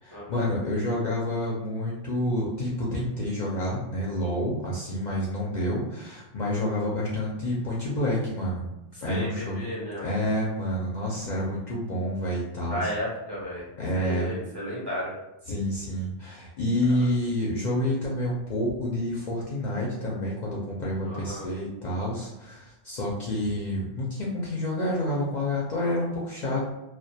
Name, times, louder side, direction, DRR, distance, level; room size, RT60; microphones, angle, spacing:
voice 1, 0.0-8.7 9.0-9.7 10.0-12.9 13.8-14.4 15.5-26.7, left 1 dB, 55° left, -4 dB, 0.5 m, -28 dB
voice 2, 9.1-10.0 12.7-13.7 13.9-15.1 21.0-21.5, equal, 30° right, -7 dB, 0.5 m, -33 dB
2.2 x 2.1 x 2.6 m, 0.98 s
omnidirectional pair, 1.1 m